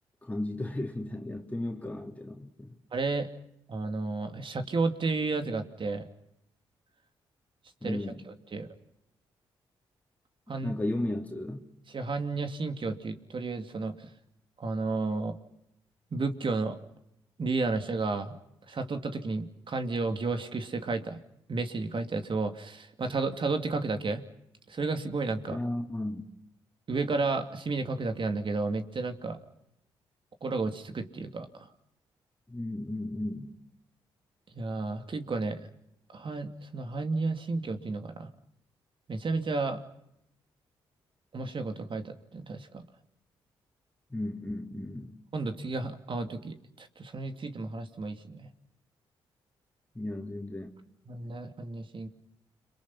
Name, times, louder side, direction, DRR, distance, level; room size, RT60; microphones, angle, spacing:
voice 1, 0.2-2.7 7.8-8.2 10.6-11.6 25.4-26.2 32.5-33.5 44.1-45.1 49.9-50.7, left 1 dB, 15° left, 2 dB, 3.2 m, -34 dB
voice 2, 2.9-3.3 3.7-6.0 7.8-8.0 8.5-8.7 10.5-10.8 11.9-13.9 14.6-15.4 16.1-16.8 17.4-18.4 18.7-21.2 21.5-24.2 24.7-25.6 26.9-29.4 30.4-31.5 34.5-35.7 36.1-38.3 39.1-39.8 41.3-42.8 45.3-48.5 51.1-52.1, right 3 dB, 50° right, 7 dB, 2.7 m, -32 dB
30.0 x 23.5 x 5.7 m, 0.81 s
supercardioid pair, 50°, 11 cm